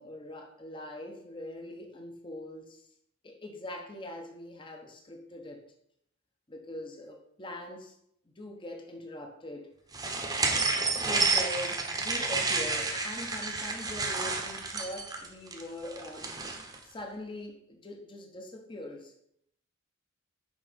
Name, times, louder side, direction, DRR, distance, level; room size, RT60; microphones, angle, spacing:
voice 1, 0.0-2.9 3.2-5.6 6.5-7.9 8.4-9.7 10.3-16.3 16.8-19.1, left 1 dB, 25° left, 3 dB, 0.9 m, -42 dB
sound 1, 9.9-16.8, right 3 dB, 20° right, 1.0 m, -30 dB
6.4 x 5.2 x 5.1 m, 0.73 s
head